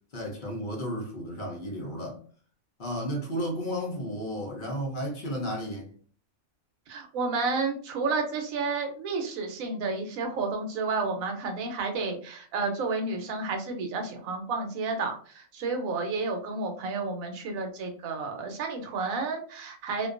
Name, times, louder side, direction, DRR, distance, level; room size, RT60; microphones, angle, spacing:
voice 1, 0.1-2.2 2.8-5.9, equal, 50° left, 0.6 m, -33 dB
voice 2, 6.9-20.1, right 4 dB, 75° right, 1.0 m, -31 dB
2.5 x 2.2 x 2.4 m
omnidirectional pair, 1.5 m